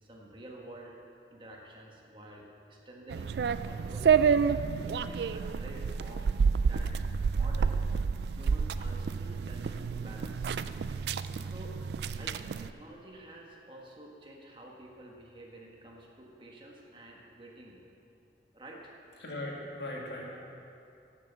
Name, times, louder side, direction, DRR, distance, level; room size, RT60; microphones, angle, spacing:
voice 1, 0.0-1.0 1.3-4.5 5.0-7.8 8.3-10.5 11.4-11.8 12.2-17.8 18.5-18.9, right 1 dB, 30° right, -1 dB, 1.2 m, -50 dB
sound 1, 3.1-12.7, right 6 dB, 70° right, 0.3 m, -29 dB
voice 2, 19.2-20.2, left 1 dB, 75° left, -3 dB, 2.1 m, -38 dB
10.5 x 7.0 x 7.1 m, 2.6 s
head